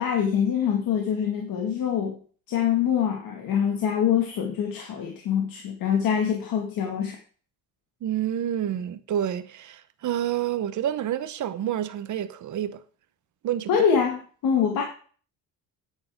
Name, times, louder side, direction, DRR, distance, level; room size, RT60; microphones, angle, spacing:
voice 1, 0.0-2.2 2.5-7.2 13.7-14.8, left 8 dB, 70° left, 1.9 m, -24 dB
voice 2, 8.0-12.8 13.4-13.9, right 10 dB, 55° right, 1.0 m, -28 dB
9.6 x 9.1 x 3.6 m
cardioid pair, 125°, 35 cm